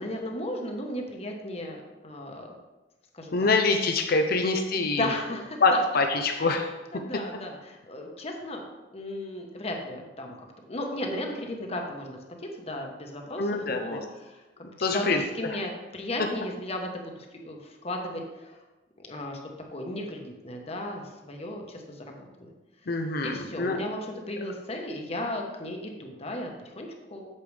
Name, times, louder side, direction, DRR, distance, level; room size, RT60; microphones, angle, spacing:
voice 1, 0.0-1.8 2.0-2.5 3.1-3.4 4.3-4.4 4.7-5.8 6.4-6.6 6.9-8.6 8.9-10.4 10.7-14.4 14.8-18.6 19.1-19.4 19.7-22.5 23.2-27.3, left 1 dB, 35° left, 2 dB, 1.2 m, -35 dB
voice 2, 3.3-5.1 5.6-6.7 13.4-14.0 14.8-15.2 15.5-15.6 22.9-23.8, left 3 dB, 55° left, 4 dB, 0.6 m, -25 dB
8.5 x 7.7 x 3.4 m, 1.1 s
head